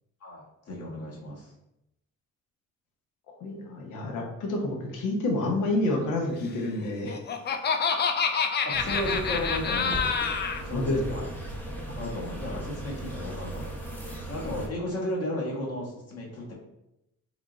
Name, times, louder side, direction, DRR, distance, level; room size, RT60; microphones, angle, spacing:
voice 1, 0.2-1.5 8.6-10.1 10.6-11.3 11.9-13.9 14.3-16.5, left 1 dB, 55° left, -3 dB, 1.3 m, -34 dB
voice 2, 3.4-7.2 10.7-11.2, left 2 dB, 80° left, 1 dB, 0.9 m, -28 dB
Laughter, 6.8-10.6, left 5 dB, 35° left, 0.4 m, -27 dB
sound 1, 8.7-14.7, right 1 dB, 5° left, 0.7 m, -37 dB
3.5 x 2.4 x 3.8 m, 0.86 s
cardioid pair, 90°, 30 cm